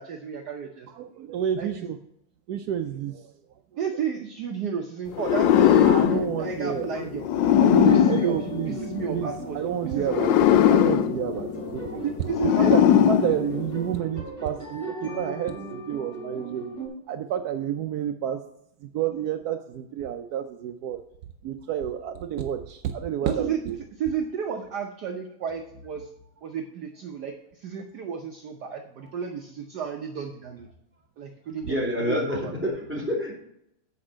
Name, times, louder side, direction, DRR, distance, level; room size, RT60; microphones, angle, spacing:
voice 1, 0.0-0.9 1.6-1.9 3.8-7.2 7.7-8.4 8.7-9.6 9.9-10.3 12.0-12.8 23.2-23.6 24.0-26.1 26.4-30.7 31.2-32.5, right 7 dB, 60° right, 3 dB, 1.2 m, -33 dB
voice 2, 0.9-2.0 2.5-3.3 5.8-7.1 7.6-8.8 9.1-12.0 12.6-16.8 17.1-18.4 18.8-21.0 21.4-23.8, right 9 dB, 75° right, 7 dB, 0.8 m, -30 dB
sound 1, 5.2-9.3 10.0-14.0, left 10 dB, 75° left, 1.2 m, -21 dB
sound 2, 7.3-16.9, right 2 dB, 45° left, 3.1 m, -38 dB
voice 3, 31.6-33.4, equal, 5° right, -4 dB, 2.6 m, -27 dB
8.6 x 5.3 x 6.2 m, 0.77 s
omnidirectional pair, 2.2 m